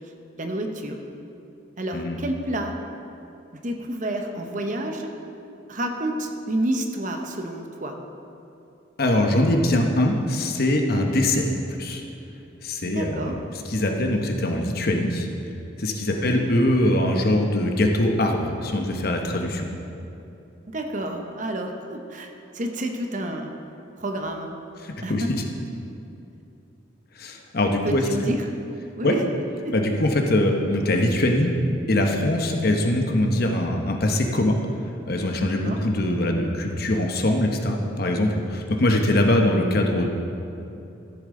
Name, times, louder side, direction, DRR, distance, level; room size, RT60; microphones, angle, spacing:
voice 1, 0.4-1.0 1.8-2.7 3.5-5.1 5.7-8.0 12.8-13.4 16.1-16.5 20.7-23.5 24.0-24.5 25.0-25.3 27.8-28.5 29.0-29.3 29.6-29.8 35.6-35.8, right 1 dB, 45° right, 3 dB, 0.9 m, -29 dB
voice 2, 9.0-12.0 12.6-13.3 13.7-15.3 15.8-19.7 24.8-25.4 27.2-28.0 29.0-29.1 29.7-31.5 31.9-34.6 35.1-40.1, left 1 dB, 55° left, 2 dB, 0.9 m, -22 dB
14.0 x 7.3 x 3.8 m, 2.8 s
head